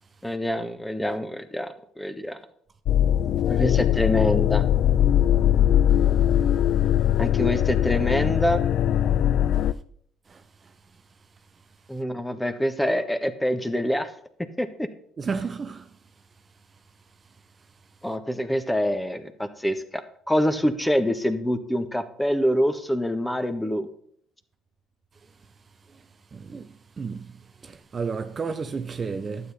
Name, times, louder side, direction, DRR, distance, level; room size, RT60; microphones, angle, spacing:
voice 1, 0.2-1.7 2.0-2.4 3.5-4.6 7.2-8.6 11.9-14.1 14.6-14.9 18.0-20.0 20.3-23.9, equal, 5° left, 1.4 m, -25 dB
sound 1, 2.9-9.7, left 11 dB, 60° left, 0.4 m, -21 dB
voice 2, 15.2-15.8 26.3-26.7 27.0-27.3 27.6-29.5, right 5 dB, 35° right, 0.6 m, -32 dB
12.0 x 8.1 x 4.2 m
hypercardioid pair, 60°, 0 cm